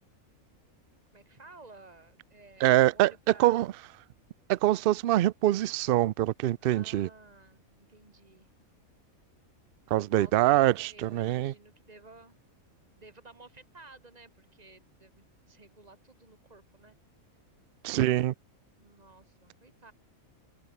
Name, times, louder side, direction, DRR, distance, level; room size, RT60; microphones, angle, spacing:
voice 1, 1.1-3.7 6.6-8.5 10.1-12.4 13.0-17.0 18.8-19.9, right 3 dB, 30° right, 3.6 m, -54 dB
voice 2, 2.6-3.1 3.4-3.7 4.5-7.1 9.9-11.5 17.8-18.3, right 14 dB, 70° right, 0.5 m, -24 dB
omnidirectional pair, 1.5 m